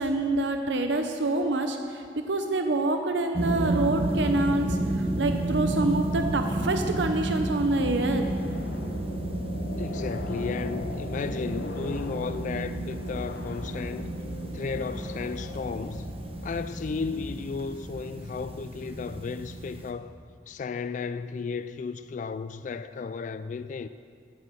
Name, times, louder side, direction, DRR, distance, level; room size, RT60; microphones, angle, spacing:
voice 1, 0.0-8.2, right 2 dB, 80° right, 0.8 m, -27 dB
sound 1, 3.3-19.9, right 1 dB, 35° right, 1.0 m, -31 dB
sound 2, 4.8-16.8, left 1 dB, 70° left, 1.1 m, -42 dB
voice 2, 9.8-14.1 14.5-16.1 16.4-20.1 20.5-23.9, left 5 dB, 45° left, 0.3 m, -34 dB
14.5 x 8.4 x 6.3 m
head